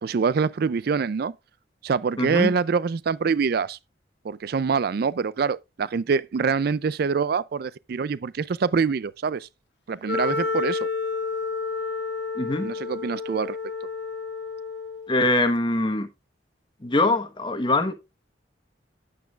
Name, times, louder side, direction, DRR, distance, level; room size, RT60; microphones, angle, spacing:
voice 1, 0.0-1.3 1.8-3.8 4.2-9.5 9.9-10.9 12.6-13.6, right 5 dB, 55° right, 0.4 m, -25 dB
voice 2, 2.2-2.5 12.4-12.7 15.1-16.1 16.8-17.9, left 2 dB, 25° left, 1.1 m, -23 dB
Wind instrument woodwind instrument, 10.1-15.2, left 4 dB, 70° left, 1.5 m, -30 dB
9.2 x 9.2 x 2.4 m
head